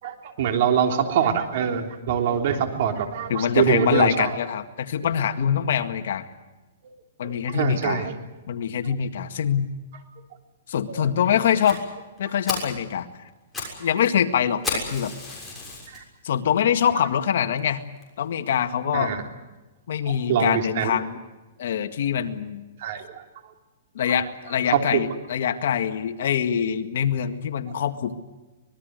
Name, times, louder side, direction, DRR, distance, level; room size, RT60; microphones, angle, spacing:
voice 1, 0.0-4.3 7.2-8.1 10.9-11.1 13.6-13.7 15.9-16.0 18.9-19.2 20.0-20.9 22.8-23.2 24.0-24.2 24.7-25.0, right 8 dB, 50° right, 5 dB, 3.5 m, -24 dB
voice 2, 3.3-6.3 7.2-8.1 8.5-9.7 10.7-11.8 12.2-13.1 13.8-15.1 16.2-17.8 18.2-19.2 19.9-21.2 21.6-22.7 24.0-28.1, left 8 dB, 60° left, 7 dB, 1.9 m, -24 dB
Fire, 11.6-11.8 12.2-12.3 12.5-12.8 13.3-13.8 14.0-14.1 14.6-16.0 16.6-16.7 17.2-17.3 17.6-17.7 18.0-18.1, left 3 dB, 5° left, 6.7 m, -32 dB
25.0 x 20.5 x 8.0 m, 1.1 s
hypercardioid pair, 160°, 0 cm